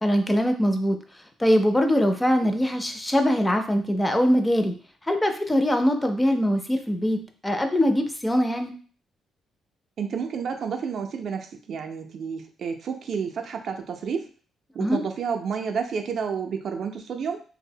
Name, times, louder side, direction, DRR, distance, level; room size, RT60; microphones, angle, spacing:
voice 1, 0.0-1.0 1.4-4.7 5.1-8.7 14.8-15.0, equal, 10° left, 5 dB, 0.4 m, -22 dB
voice 2, 10.0-14.3 14.7-17.4, right 6 dB, 60° right, 4 dB, 0.3 m, -30 dB
2.6 x 2.0 x 2.6 m, 0.42 s
cardioid pair, 90°, 0 cm